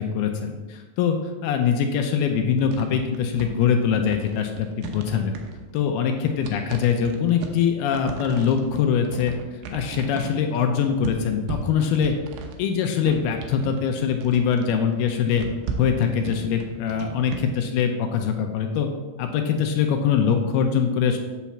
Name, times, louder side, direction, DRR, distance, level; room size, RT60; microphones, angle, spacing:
voice 1, 0.0-5.4 5.7-12.1 12.6-15.5 15.8-18.9 19.2-21.2, left 7 dB, 80° left, 5 dB, 2.5 m, -23 dB
sound 1, 2.6-17.4, right 5 dB, 85° right, 3.0 m, -37 dB
8.3 x 4.4 x 7.1 m, 1.2 s
omnidirectional pair, 4.7 m